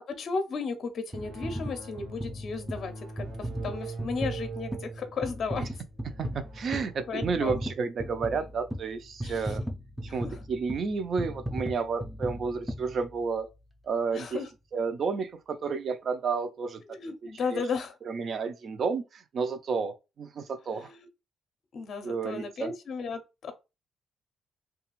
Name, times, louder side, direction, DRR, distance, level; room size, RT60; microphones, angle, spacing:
voice 1, 0.1-5.7 7.1-7.6 9.2-9.6 10.1-10.4 12.3-12.6 14.1-14.5 16.9-18.0 20.8-21.0 21.7-23.5, left 4 dB, 55° left, 0.5 m, -35 dB
sound 1, 1.1-13.5 14.1-14.2, equal, 5° right, 0.5 m, -37 dB
sound 2, 1.1-9.2, right 3 dB, 85° right, 1.2 m, -43 dB
voice 2, 6.1-9.6 10.0-13.5 13.8-14.4 14.7-17.6 18.1-20.9 22.0-22.7, right 5 dB, 55° right, 0.5 m, -31 dB
2.4 x 2.3 x 3.0 m
cardioid pair, 90°, 0 cm